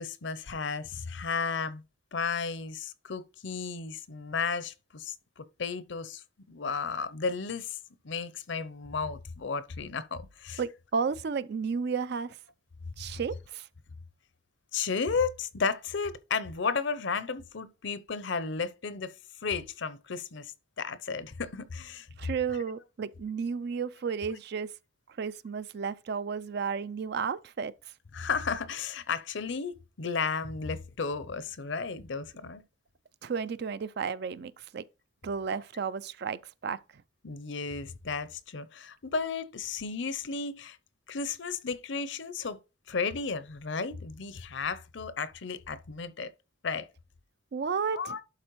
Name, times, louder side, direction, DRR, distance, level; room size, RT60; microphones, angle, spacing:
voice 1, 0.0-1.8 2.1-6.2 6.5-7.8 8.0-10.6 14.7-19.1 19.4-22.1 28.1-32.6 37.2-40.8 41.1-42.6 42.9-46.3 46.6-46.9 47.9-48.2, left 5 dB, 60° left, 0.6 m, -33 dB
voice 2, 10.6-12.4 13.0-13.7 22.2-24.7 25.2-27.7 33.2-34.8 35.2-36.8 47.5-48.1, right 5 dB, 50° right, 0.4 m, -33 dB
11.5 x 4.2 x 3.1 m
head